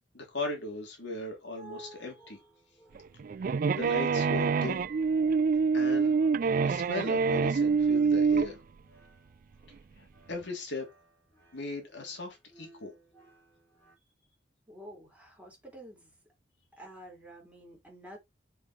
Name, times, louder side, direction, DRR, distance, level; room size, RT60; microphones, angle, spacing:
voice 1, 0.1-2.4 3.7-4.9 5.7-6.2 6.6-8.6 10.0-10.9 11.5-12.9, left 3 dB, 70° left, 3.2 m, -38 dB
sound 1, 1.3-13.9, right 1 dB, 15° left, 4.7 m, -55 dB
sound 2, 3.0-8.5, right 5 dB, 50° right, 0.3 m, -26 dB
voice 2, 14.7-16.1 16.8-18.2, equal, 10° right, 4.1 m, -49 dB
6.3 x 5.7 x 4.4 m
head